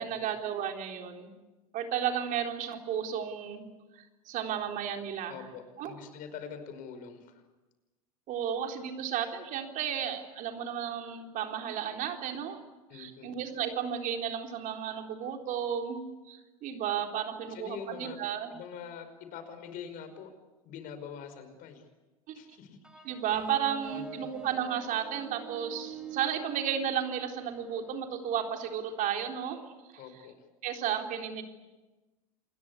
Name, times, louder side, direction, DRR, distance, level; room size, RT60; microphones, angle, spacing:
voice 1, 0.0-1.3 1.7-3.7 3.9-5.4 5.8-6.0 8.3-12.6 12.9-16.0 16.3-18.6 22.3-22.4 23.0-29.6 29.9-30.0 30.6-31.4, right 9 dB, 45° right, 3 dB, 3.8 m, -33 dB
voice 2, 5.3-7.4 12.9-13.3 17.5-18.2 18.5-20.3 20.6-21.8 22.3-23.0 23.9-24.3 30.0-30.3, left 7 dB, 50° left, 9 dB, 5.4 m, -44 dB
sound 1, 22.8-28.0, right 5 dB, 5° right, 6.1 m, -44 dB
28.0 x 21.0 x 8.5 m, 1.1 s
hypercardioid pair, 95°, 19 cm